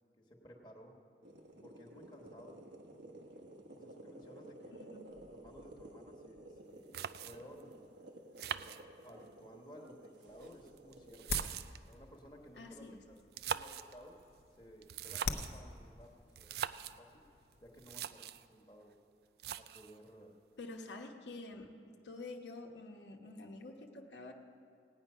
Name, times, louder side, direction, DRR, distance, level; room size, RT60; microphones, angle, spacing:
voice 1, 0.2-0.9 1.6-2.6 3.7-4.8 5.1-6.9 7.2-7.9 8.8-11.4 11.9-14.2 14.6-17.2 17.6-19.0 19.6-20.3, equal, 25° left, 0 dB, 1.2 m, -56 dB
sound 1, 1.2-11.3, right 1 dB, 90° right, 1.2 m, -54 dB
sound 2, 6.6-6.7 6.9-7.6 8.4-9.3 10.2-11.9 13.2-14.0 14.8-15.6 16.4-17.0 17.5-17.6 17.8-18.5 19.4-20.0, right 9 dB, 65° right, 0.3 m, -42 dB
sound 3, 10.3-18.0, left 4 dB, 65° left, 0.7 m, -46 dB
voice 2, 12.6-13.0 20.6-21.7 22.0-24.3, left 2 dB, 85° left, 2 dB, 1.1 m, -48 dB
17.5 x 9.1 x 5.5 m, 2.5 s
head